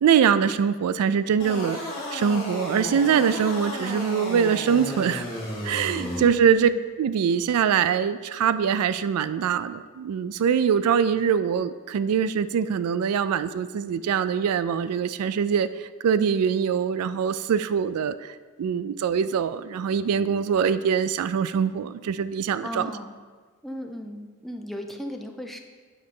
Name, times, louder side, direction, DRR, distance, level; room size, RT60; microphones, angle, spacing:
voice 1, 0.0-1.8 2.1-5.3 5.6-6.7 7.0-22.9, right 7 dB, 90° right, 14 dB, 0.3 m, -23 dB
sound 1, 1.4-6.2, left 1 dB, 25° left, 2.4 m, -33 dB
voice 2, 6.0-6.8 22.6-23.1 23.6-25.6, left 1 dB, ahead, 3 dB, 0.5 m, -36 dB
8.7 x 3.9 x 5.3 m, 1.5 s
head